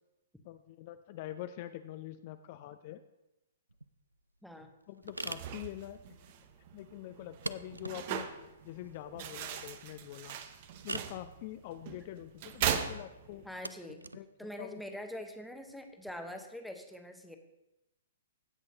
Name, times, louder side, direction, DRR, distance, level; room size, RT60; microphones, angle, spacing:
voice 1, 0.4-3.0 4.9-6.0 6.7-8.3 8.6-10.4 10.8-13.4 14.1-14.8, left 13 dB, 40° left, 9 dB, 0.4 m, -45 dB
sound 1, 3.7-16.1, right 2 dB, 85° right, 0.3 m, -47 dB
voice 2, 4.4-4.7 13.4-14.1 14.4-17.4, left 1 dB, ahead, 4 dB, 0.9 m, -44 dB
sound 2, 5.0-13.6, right 8 dB, 40° right, 0.7 m, -40 dB
16.0 x 6.2 x 2.8 m, 0.93 s
figure-of-eight pair, 115°, 0 cm